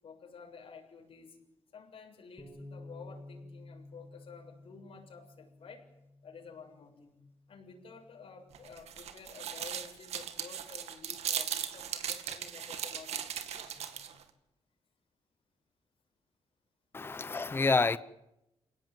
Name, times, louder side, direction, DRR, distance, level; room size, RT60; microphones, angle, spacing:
voice 1, 0.0-1.4 1.7-5.9 6.2-7.2 7.5-14.2 17.0-17.2, left 5 dB, 60° left, 7.3 m, -51 dB
Bass guitar, 2.4-8.6, left 2 dB, 5° left, 4.6 m, -53 dB
sound 1, 8.5-14.2, right 9 dB, 90° right, 2.4 m, -38 dB
voice 2, 16.9-18.0, left 4 dB, 20° left, 0.9 m, -28 dB
28.5 x 18.5 x 9.4 m
cardioid pair, 125°, 11 cm